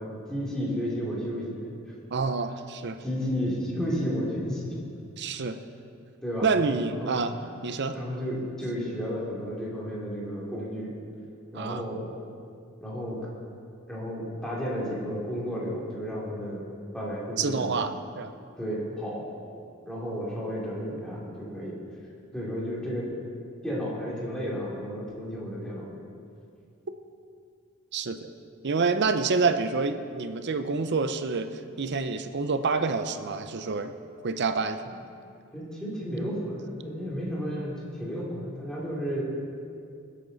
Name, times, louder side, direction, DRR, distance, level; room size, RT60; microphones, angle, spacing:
voice 1, 0.0-1.7 3.0-4.8 6.2-6.5 6.9-7.5 7.9-10.9 11.5-12.1 12.8-13.2 13.9-16.6 16.9-17.7 18.6-19.3 19.8-21.8 22.3-23.1 23.6-25.9 35.5-39.2, equal, 5° left, -6 dB, 2.6 m, -32 dB
voice 2, 2.1-3.0 5.2-5.6 6.4-7.3 7.6-8.0 11.5-11.8 17.4-18.3 27.9-28.3 28.6-31.5 31.8-33.9 34.2-34.8, right 4 dB, 55° right, 9 dB, 0.7 m, -27 dB
19.5 x 8.3 x 4.0 m, 2.4 s
head